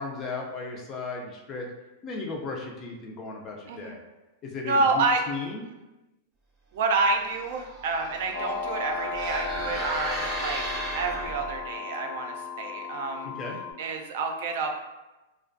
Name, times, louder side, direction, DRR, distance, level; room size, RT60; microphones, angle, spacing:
voice 1, 0.0-1.7 2.0-4.0 4.4-5.6 13.4-13.6, left 3 dB, 25° left, 0 dB, 0.4 m, -35 dB
voice 2, 4.6-5.2 6.7-13.3 13.8-14.8, right 3 dB, 65° right, 3 dB, 0.3 m, -28 dB
sound 1, 7.2-11.6, right 1 dB, 15° right, 0.6 m, -36 dB
sound 2, 8.3-13.7, left 4 dB, 85° left, 0.6 m, -35 dB
2.4 x 2.2 x 2.5 m, 1.1 s
supercardioid pair, 150°, 0 cm